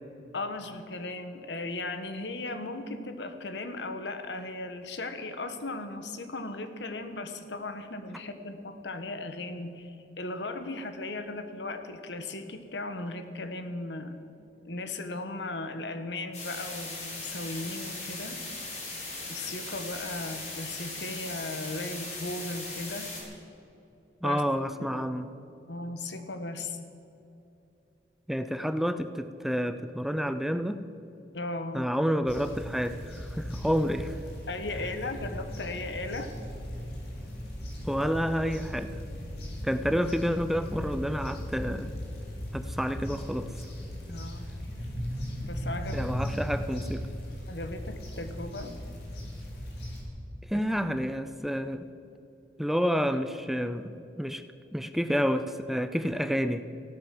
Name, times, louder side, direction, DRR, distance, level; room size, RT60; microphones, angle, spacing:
voice 1, 0.3-14.2 14.6-18.4 19.3-23.1 24.2-24.4 24.8-24.9 25.7-26.8 31.3-31.9 33.6-33.8 34.5-36.3 44.1-44.4 45.4-46.1 47.5-48.8 50.5-50.6, left 2 dB, 80° left, 8 dB, 1.3 m, -37 dB
sound 1, 16.3-23.2, left 2 dB, 40° left, 4.2 m, -39 dB
voice 2, 24.2-25.3 28.3-30.9 31.7-34.1 37.8-39.0 39.6-41.9 42.5-43.5 45.9-47.0 50.5-51.9 52.6-54.4 54.7-56.7, equal, ahead, 10 dB, 0.4 m, -29 dB
sound 2, 32.3-50.0, equal, 60° left, 3.7 m, -37 dB
15.0 x 12.0 x 7.6 m, 2.8 s
head